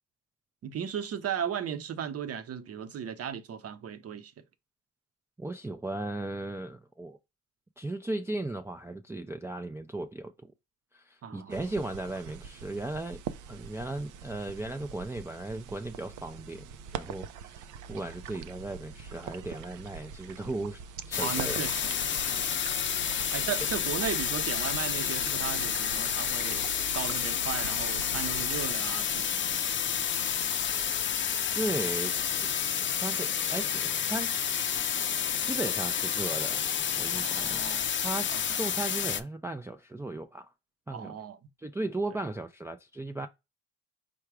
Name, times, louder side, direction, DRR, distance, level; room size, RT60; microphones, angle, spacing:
voice 1, 0.6-4.3 11.2-11.6 21.2-21.9 22.3-22.6 23.3-26.7 26.9-29.6 37.1-37.9 38.3-38.6 40.9-41.4 42.1-42.2, right 8 dB, 50° right, 0.7 m, -36 dB
voice 2, 5.4-7.2 7.8-10.3 10.9-13.2 13.5-20.8 21.1-21.6 22.4-22.5 31.5-32.5 33.0-34.9 35.4-36.6 37.0-37.6 38.0-40.5 40.9-41.2 41.6-43.3, right 2 dB, 10° right, 0.4 m, -36 dB
sound 1, 11.5-28.7, right 7 dB, 80° right, 0.5 m, -44 dB
sound 2, 21.1-39.2, left 8 dB, 40° left, 0.6 m, -30 dB
4.7 x 2.3 x 4.7 m
cardioid pair, 90°, 30 cm